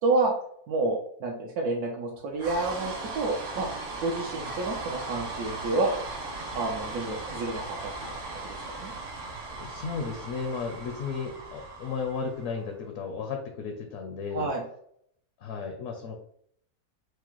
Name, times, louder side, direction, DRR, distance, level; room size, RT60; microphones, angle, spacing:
voice 1, 0.0-0.3 0.7-3.7 4.0-5.9 6.5-7.9 8.3-8.9 14.3-14.6, right 3 dB, 75° right, -1 dB, 1.1 m, -29 dB
sound 1, 2.4-12.7, right 2 dB, 50° right, 0.9 m, -38 dB
voice 2, 9.6-14.5 15.4-16.2, left 5 dB, 70° left, 3 dB, 0.8 m, -34 dB
4.7 x 2.1 x 2.9 m, 0.66 s
omnidirectional pair, 1.7 m